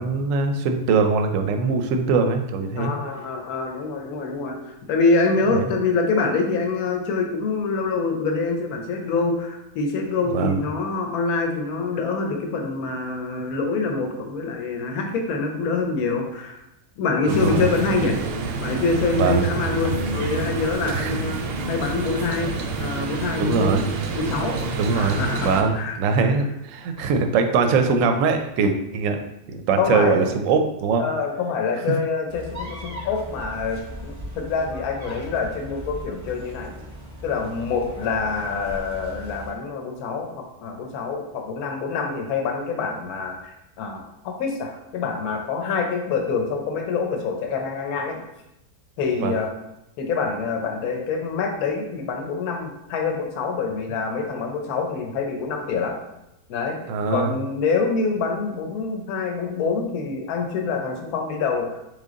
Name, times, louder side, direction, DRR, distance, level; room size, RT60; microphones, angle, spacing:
voice 1, 0.0-2.9 5.5-5.6 10.3-10.6 17.3-17.7 19.1-19.4 20.9-21.2 23.4-23.8 24.8-29.2 29.5-31.0 49.2-49.3 56.9-57.3, right 4 dB, 70° right, 6 dB, 0.9 m, -22 dB
voice 2, 2.8-16.6 17.0-18.2 18.6-21.4 21.7-22.5 22.8-23.8 24.1-24.6 24.9-26.3 29.8-30.3 31.0-36.7 37.2-48.2 49.0-49.5 50.0-56.0 56.5-56.8 57.1-61.8, left 4 dB, 80° left, 3 dB, 1.2 m, -25 dB
sound 1, 17.3-25.6, right 4 dB, 90° right, 0.5 m, -28 dB
sound 2, 32.3-39.6, equal, 25° right, 0.4 m, -38 dB
4.0 x 3.4 x 3.6 m, 0.87 s
omnidirectional pair, 1.6 m